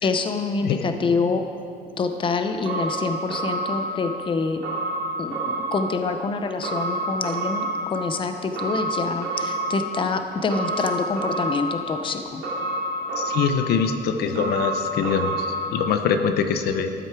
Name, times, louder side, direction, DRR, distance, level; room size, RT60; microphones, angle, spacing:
voice 1, 0.0-1.4 2.0-4.6 5.2-12.4, left 4 dB, 30° left, 7 dB, 0.7 m, -26 dB
sound 1, 2.6-15.9, right 1 dB, 80° right, 2.3 m, -29 dB
voice 2, 13.2-16.9, left 6 dB, 70° left, 7 dB, 0.7 m, -23 dB
13.0 x 7.7 x 4.7 m, 2.4 s
cardioid pair, 110°, 17 cm